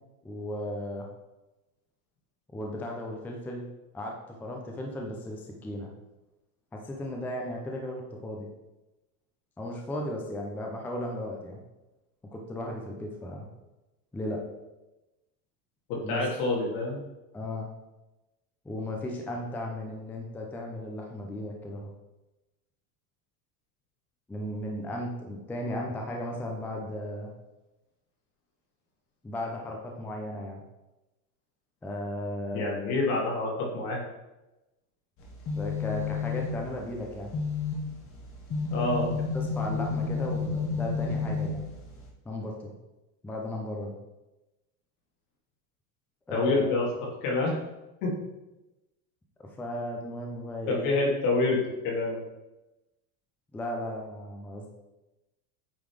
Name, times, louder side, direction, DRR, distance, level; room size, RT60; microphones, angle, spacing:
voice 1, 0.2-1.1 2.5-3.6 3.9-5.9 6.7-8.5 9.6-11.6 12.3-13.5 14.1-14.4 16.0-16.2 17.3-17.7 18.6-21.9 24.3-27.3 29.2-30.6 31.8-33.1 35.5-37.3 39.0-39.1 39.3-41.6 42.3-42.7 43.2-43.9 46.3-46.7 49.4-50.9 53.5-54.7, left 1 dB, 5° left, 0 dB, 0.5 m, -35 dB
voice 2, 15.9-17.0 32.5-34.0 38.7-39.1 46.3-46.8 47.2-47.6 48.0-48.1 50.7-52.2, left 2 dB, 70° left, -3 dB, 2.8 m, -27 dB
sound 1, 35.2-42.1, left 5 dB, 30° left, 1.3 m, -32 dB
8.7 x 3.9 x 4.8 m, 1.0 s
supercardioid pair, 160°, 44 cm